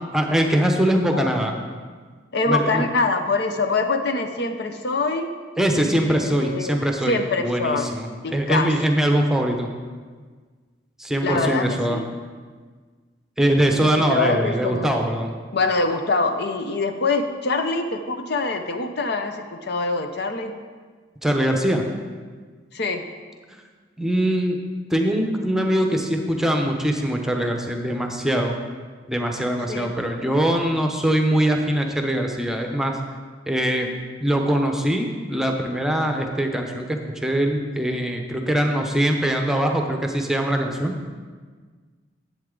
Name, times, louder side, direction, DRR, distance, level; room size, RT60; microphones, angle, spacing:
voice 1, 0.1-1.5 2.5-2.8 5.6-9.7 11.0-12.0 13.4-15.3 21.2-21.8 24.0-24.6 24.9-28.5 29.1-33.0 33.5-33.9 34.2-40.9, right 1 dB, 5° right, 3 dB, 0.8 m, -22 dB
voice 2, 2.3-5.3 6.2-6.8 7.1-7.9 8.2-8.7 11.2-12.1 13.8-15.0 15.5-20.5 22.7-23.0 29.7-29.9, left 3 dB, 60° left, 6 dB, 0.7 m, -24 dB
11.0 x 7.9 x 3.8 m, 1.5 s
head